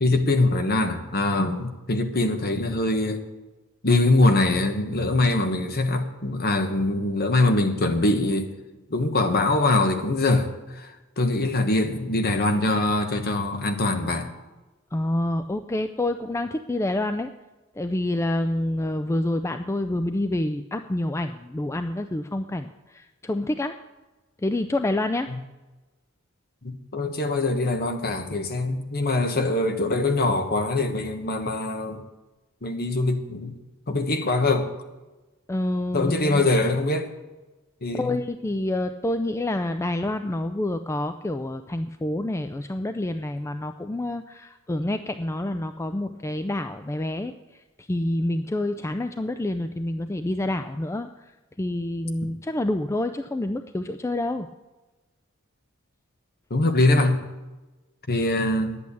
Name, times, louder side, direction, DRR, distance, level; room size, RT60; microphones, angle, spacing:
voice 1, 0.0-3.2 3.8-8.5 8.9-10.9 11.2-14.3 26.6-32.0 32.6-33.6 33.9-34.7 35.9-37.1 37.8-38.2 56.5-57.2 58.1-58.8, left 2 dB, 45° left, 6 dB, 1.3 m, -23 dB
voice 2, 14.9-17.3 17.8-23.7 24.4-25.3 35.5-36.5 37.9-51.3 51.6-54.5, left 1 dB, 15° left, 8 dB, 0.4 m, -28 dB
10.5 x 8.5 x 8.4 m, 1.1 s
head